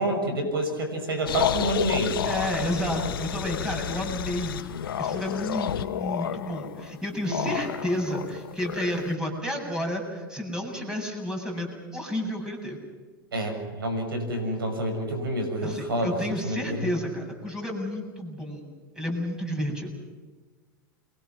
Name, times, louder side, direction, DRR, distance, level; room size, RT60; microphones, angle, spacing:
voice 1, 0.0-2.2 7.2-7.6 13.3-16.2 16.4-16.9, right 1 dB, 85° right, 5 dB, 6.7 m, -28 dB
sound 1, 1.3-9.2, left 10 dB, 80° left, 1.1 m, -31 dB
voice 2, 2.2-4.7 5.0-12.8 15.6-18.6 18.9-19.9, equal, 5° right, 1 dB, 7.9 m, -31 dB
29.5 x 23.0 x 6.1 m, 1.4 s
hypercardioid pair, 105°, 12 cm